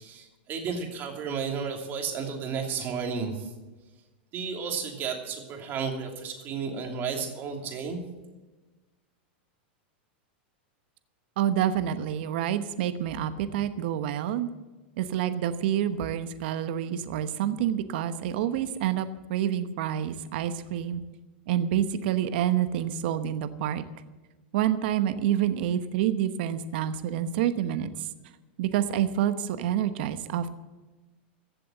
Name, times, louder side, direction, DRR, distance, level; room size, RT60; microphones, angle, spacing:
voice 1, 0.0-3.5 4.3-8.0, right 5 dB, 35° right, 2 dB, 2.9 m, -33 dB
voice 2, 11.4-14.5 15.0-21.0 21.5-23.9 24.5-28.1 28.6-30.5, right 10 dB, 65° right, 11 dB, 1.0 m, -28 dB
15.5 x 7.6 x 7.7 m, 1.2 s
supercardioid pair, 130°, 6 cm